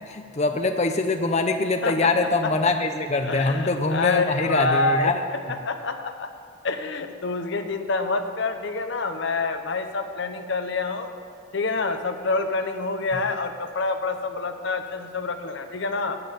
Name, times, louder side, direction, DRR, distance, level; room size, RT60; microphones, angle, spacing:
voice 1, 0.0-5.1, left 3 dB, 30° left, 6 dB, 0.6 m, -23 dB
voice 2, 1.8-2.1 2.4-2.5 3.2-6.3 6.6-11.1 11.5-16.2, left 3 dB, 55° left, 7 dB, 0.8 m, -27 dB
12.0 x 6.7 x 8.4 m, 2.3 s
head